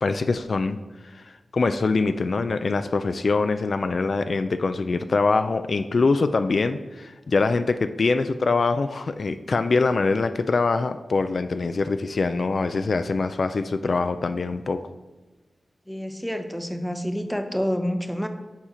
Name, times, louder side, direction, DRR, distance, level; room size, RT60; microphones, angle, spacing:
voice 1, 0.0-14.8, left 3 dB, 65° left, 10 dB, 0.3 m, -24 dB
voice 2, 15.9-18.3, equal, 5° left, 7 dB, 0.7 m, -28 dB
7.2 x 4.3 x 4.9 m, 1.2 s
wide cardioid pair, 70°, 0 cm